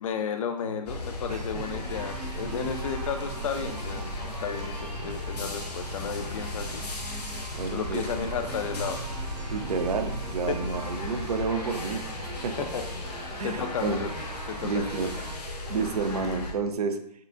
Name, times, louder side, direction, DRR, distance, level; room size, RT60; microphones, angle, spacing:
voice 1, 0.0-6.8 7.7-9.0 10.5-10.6 12.6-13.2 13.4-14.1 14.5-14.8, left 7 dB, 55° left, 7 dB, 0.5 m, -33 dB
sound 1, 0.6-7.2 7.6-15.2 15.6-16.6, right 2 dB, 50° right, 1.0 m, -48 dB
sound 2, 0.9-16.5, left 1 dB, 75° left, 1.0 m, -36 dB
voice 2, 1.3-1.7 7.5-8.1 9.5-12.0 12.4-12.7 13.4-14.1 14.6-15.1 15.7-17.0, right 4 dB, 65° right, 7 dB, 0.6 m, -30 dB
sound 3, 1.6-15.3, right 2 dB, 15° right, 0.3 m, -42 dB
6.4 x 2.3 x 2.5 m, 0.70 s
figure-of-eight pair, 130°, 21 cm